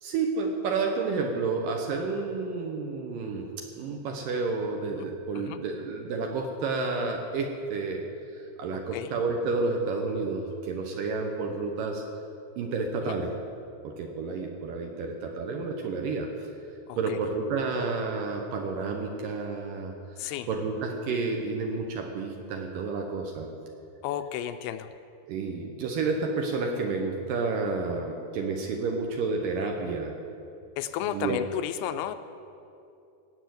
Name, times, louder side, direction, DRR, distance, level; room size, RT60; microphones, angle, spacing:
voice 1, 0.0-8.0 8.3-12.0 12.6-13.3 13.8-16.5 17.0-19.9 20.2-23.5 25.3-30.1 31.1-31.4, right 4 dB, 70° right, 2 dB, 2.3 m, -30 dB
voice 2, 16.9-17.2 20.2-20.5 24.0-24.9 30.8-32.2, left 11 dB, 85° left, 10 dB, 2.5 m, -33 dB
17.5 x 6.8 x 7.8 m, 2.7 s
omnidirectional pair, 4.8 m